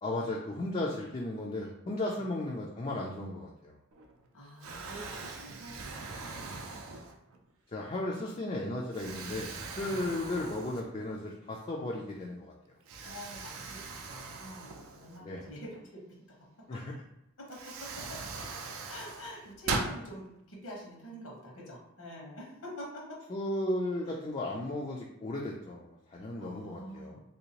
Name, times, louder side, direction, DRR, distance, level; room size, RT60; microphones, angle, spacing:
voice 1, 0.0-3.8 7.7-12.5 15.2-15.4 16.7-16.8 23.3-27.2, left 1 dB, 30° left, -2 dB, 0.3 m, -35 dB
Explosion, 3.9-4.3 4.6-7.4 8.0-8.2 8.9-11.2 11.5-11.6 12.9-15.5 16.9-17.0 17.5-20.0, right 3 dB, 75° right, 0.5 m, -40 dB
voice 2, 4.3-6.5 9.8-10.0 13.0-16.1 16.7-16.8 17.5-18.5 18.9-23.2 26.4-27.2, equal, 85° left, -3 dB, 1.1 m, -46 dB
3.4 x 2.7 x 2.9 m, 0.85 s
head